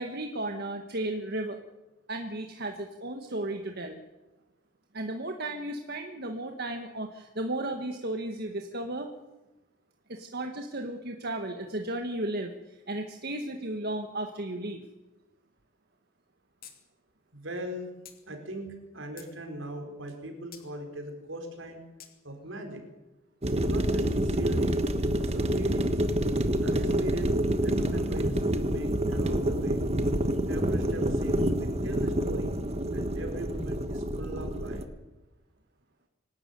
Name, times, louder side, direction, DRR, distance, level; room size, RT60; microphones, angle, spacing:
voice 1, 0.0-1.6 2.1-4.0 4.9-9.1 10.1-14.8, right 1 dB, 50° right, 4 dB, 1.7 m, -34 dB
sound 1, 16.6-16.8 17.1-17.2 18.0-18.2 18.8-19.3 20.5-20.7 22.0-22.1, left 10 dB, 45° left, 2.8 m, -48 dB
voice 2, 17.3-17.9 18.3-21.8 22.2-22.8 23.5-24.8 25.2-26.0 26.6-29.8 30.5-32.6 32.9-34.8, right 1 dB, 75° right, 4 dB, 4.6 m, -39 dB
sound 2, 23.4-34.8, right 1 dB, 30° right, 1.4 m, -27 dB
25.5 x 12.5 x 9.4 m, 1.0 s
head